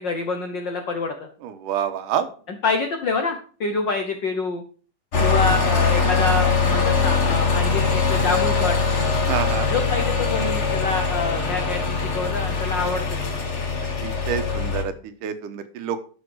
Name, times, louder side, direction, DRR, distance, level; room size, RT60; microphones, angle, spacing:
voice 1, 0.0-1.3 2.5-4.6 5.2-8.8 9.7-13.1, left 4 dB, 70° left, 5 dB, 1.0 m, -26 dB
voice 2, 1.4-2.3 9.3-9.7 14.0-16.0, right 9 dB, 80° right, 9 dB, 2.6 m, -27 dB
sound 1, 5.1-14.8, left 4 dB, 40° left, 1.0 m, -22 dB
13.0 x 5.7 x 4.8 m, 0.40 s
omnidirectional pair, 3.7 m